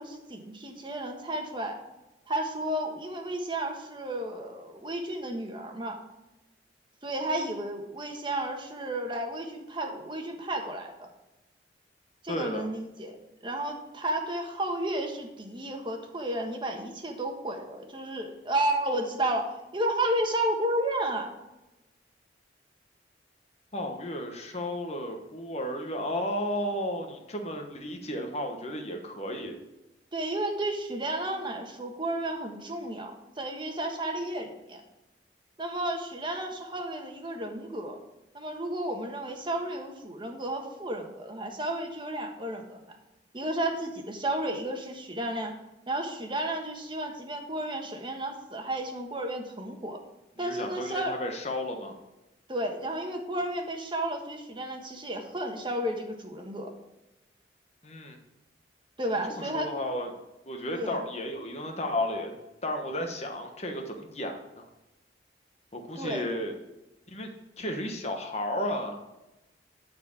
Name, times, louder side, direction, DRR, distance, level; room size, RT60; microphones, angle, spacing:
voice 1, 0.0-1.8 2.3-6.0 7.0-11.1 12.2-13.2 13.4-21.3 30.1-33.1 33.4-34.8 35.6-38.0 38.3-42.8 43.3-45.5 45.9-50.0 50.4-51.1 52.5-56.7 59.0-59.7 60.7-61.0 65.9-66.3, right 1 dB, 25° right, 3 dB, 1.4 m, -32 dB
voice 2, 12.3-12.7 23.7-29.5 50.4-52.0 57.8-58.2 59.3-60.1 60.4-62.4 62.6-64.7 65.7-66.5 67.1-67.3 67.6-69.0, left 1 dB, 35° left, 3 dB, 1.1 m, -33 dB
11.5 x 4.4 x 7.2 m, 0.97 s
head